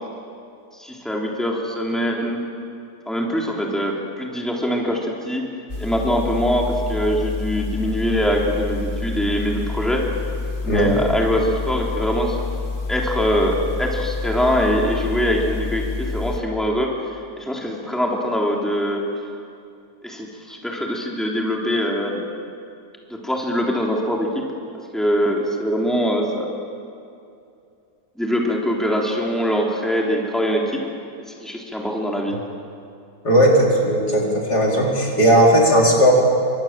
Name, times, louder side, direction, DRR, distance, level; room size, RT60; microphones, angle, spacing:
voice 1, 0.8-2.5 3.1-5.4 5.8-10.0 10.6-12.4 12.9-16.9 17.4-19.0 20.0-22.2 23.1-24.4 24.9-26.5 28.2-30.8 31.3-32.4, equal, ahead, -1 dB, 3.6 m, -23 dB
sound 1, 5.7-16.4, left 4 dB, 35° left, 1.9 m, -28 dB
voice 2, 33.2-36.1, equal, 90° left, -2 dB, 5.3 m, -16 dB
29.5 x 24.5 x 7.7 m, 2.6 s
omnidirectional pair, 1.7 m